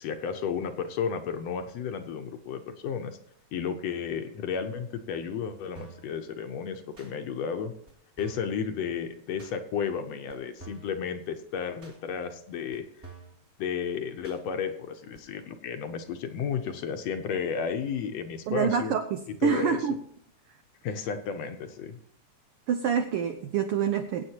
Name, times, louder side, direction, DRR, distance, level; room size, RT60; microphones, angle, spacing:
voice 1, 0.0-3.2 3.5-7.7 8.2-12.9 13.6-18.9 19.4-19.8 20.8-22.0, left 6 dB, 70° left, 7 dB, 1.9 m, -33 dB
sound 1, 5.8-6.1 7.0-7.1 7.9-8.0 8.2-8.5 9.4-9.6 10.3-10.4 10.6-11.0 11.8-12.0 12.7-12.8 13.0-13.4 14.2-14.4 15.1-15.2, right 4 dB, 25° right, 2.3 m, -47 dB
voice 2, 18.5-20.0 22.7-24.2, right 7 dB, 85° right, 8 dB, 1.2 m, -27 dB
23.0 x 8.6 x 2.9 m, 0.66 s
omnidirectional pair, 3.4 m